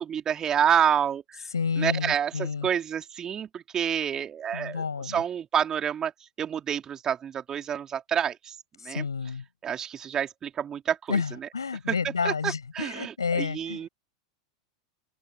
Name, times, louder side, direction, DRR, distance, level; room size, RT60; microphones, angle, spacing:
voice 1, 0.1-1.4 1.8-6.1 6.4-8.6 8.8-9.0 9.6-11.2 12.2-13.9, right 8 dB, 30° right, 3.6 m, -28 dB
voice 2, 1.5-2.7 4.5-5.2 8.8-9.4 11.1-13.8, left 5 dB, 85° left, 6.4 m, -30 dB
open air
figure-of-eight pair, 90°, 2 cm